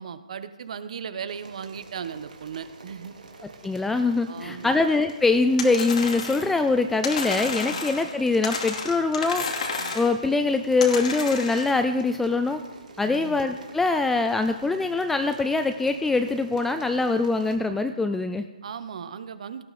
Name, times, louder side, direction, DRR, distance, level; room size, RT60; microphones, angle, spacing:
voice 1, 0.0-3.1 4.3-4.8 7.7-7.9 9.8-10.0 13.0-13.4 18.6-19.6, right 7 dB, 55° right, 12 dB, 1.0 m, -37 dB
sound 1, 1.3-17.6, right 3 dB, 80° right, 2.4 m, -47 dB
voice 2, 3.6-9.4 9.9-12.6 13.0-18.5, left 3 dB, 5° left, 8 dB, 0.3 m, -23 dB
sound 2, 5.6-6.6 7.0-8.1 8.4-10.2 10.8-11.7, left 4 dB, 60° left, 2.5 m, -31 dB
17.5 x 12.5 x 4.2 m, 1.1 s
hypercardioid pair, 150°, 4 cm